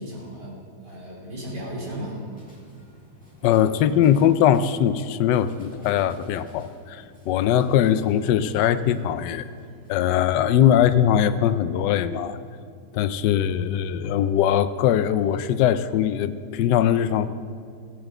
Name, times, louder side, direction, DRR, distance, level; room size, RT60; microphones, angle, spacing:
voice 1, 0.0-2.2, equal, 80° right, -3 dB, 3.6 m, -35 dB
sound 1, 2.3-10.2, left 1 dB, 5° left, 2.2 m, -51 dB
voice 2, 3.4-9.5 9.9-12.4 12.9-17.3, left 10 dB, 90° left, 13 dB, 1.2 m, -21 dB
16.0 x 8.0 x 6.0 m, 2.2 s
omnidirectional pair, 1.8 m